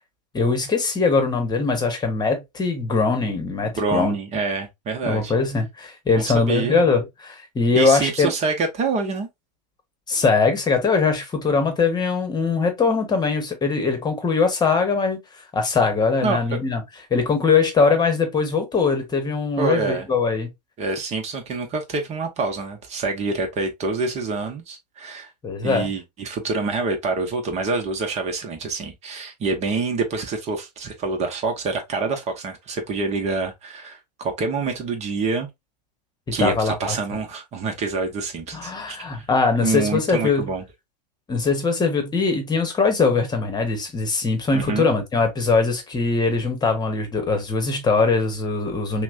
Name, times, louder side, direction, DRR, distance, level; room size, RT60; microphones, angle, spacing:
voice 1, 0.3-4.1 5.0-8.3 10.1-15.2 15.5-16.8 17.1-20.5 25.4-25.9 36.4-37.2 38.5-40.5 41.3-49.0, left 4 dB, 20° left, 1.2 m, -21 dB
voice 2, 3.6-5.3 6.1-6.8 7.7-9.3 16.2-16.4 19.6-20.1 20.8-25.3 25.6-35.5 36.3-39.3 39.6-40.6 44.5-44.9, right 4 dB, 30° right, 1.1 m, -26 dB
5.8 x 2.3 x 2.6 m
hypercardioid pair, 100°, 21 cm